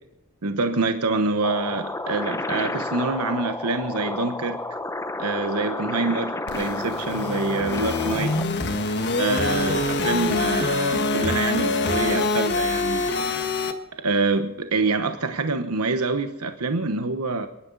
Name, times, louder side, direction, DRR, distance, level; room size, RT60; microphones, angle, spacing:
voice 1, 0.4-4.6 5.2-8.4 9.2-13.1 14.0-17.5, right 3 dB, 85° right, 1.1 m, -26 dB
sound 1, 1.4-8.4, left 2 dB, 15° left, 0.7 m, -31 dB
sound 2, 6.5-13.7, left 3 dB, 50° left, 1.5 m, -25 dB
27.5 x 11.5 x 4.0 m
head